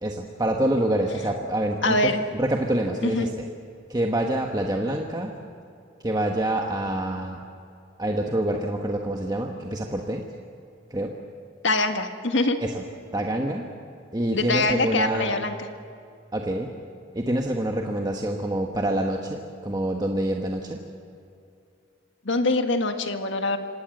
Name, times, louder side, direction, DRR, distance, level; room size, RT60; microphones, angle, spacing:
voice 1, 0.0-3.3 3.9-5.3 6.0-7.4 8.0-10.2 10.9-11.1 12.6-12.8 13.1-13.6 14.1-15.4 16.3-16.7 17.1-20.8, right 1 dB, 20° right, 2 dB, 1.3 m, -26 dB
voice 2, 1.8-2.2 3.0-3.3 11.6-12.6 14.3-15.5 22.2-23.6, left 2 dB, 65° left, 7 dB, 1.8 m, -23 dB
26.5 x 18.5 x 7.9 m, 2.6 s
head